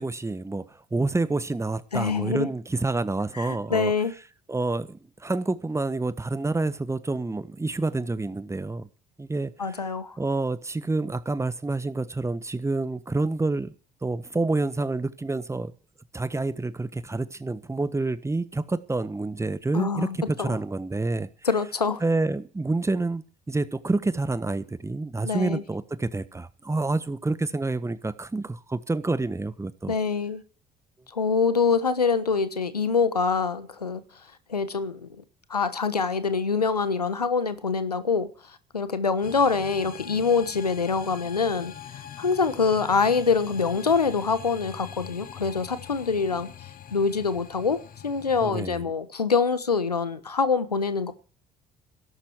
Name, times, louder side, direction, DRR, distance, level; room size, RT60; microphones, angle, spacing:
voice 1, 0.0-3.9 4.5-8.9 9.2-13.7 14.0-15.7 16.1-21.3 22.0-29.9 48.4-48.9, right 2 dB, 15° right, 1.5 m, -28 dB
voice 2, 1.9-2.5 3.4-4.1 9.6-10.2 19.7-20.5 21.4-22.0 25.2-25.6 29.9-30.4 31.1-34.0 34.5-35.1 35.5-38.3 38.7-46.5 46.9-51.1, left 5 dB, 90° left, 1.3 m, -25 dB
sound 1, 39.2-48.5, left 9 dB, 45° left, 1.6 m, -43 dB
17.5 x 12.0 x 4.7 m
figure-of-eight pair, 55°, 20 cm